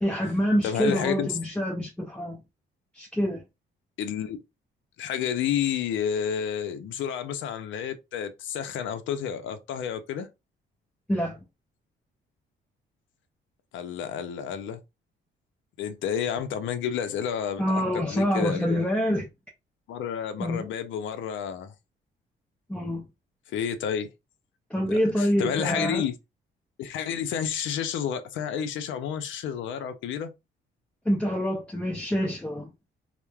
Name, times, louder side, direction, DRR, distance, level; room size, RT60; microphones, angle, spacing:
voice 1, 0.0-2.4 2.9-3.4 11.1-11.4 17.6-19.3 20.4-20.7 22.7-23.0 24.7-26.0 31.1-32.7, equal, 5° left, 0.5 m, -26 dB
voice 2, 0.6-1.4 4.0-4.4 5.0-10.3 13.7-14.8 15.8-18.8 19.9-21.7 23.5-24.1 24.9-26.1 26.8-30.3, left 8 dB, 75° left, 0.5 m, -30 dB
3.0 x 2.0 x 2.2 m
cardioid pair, 90°, 20 cm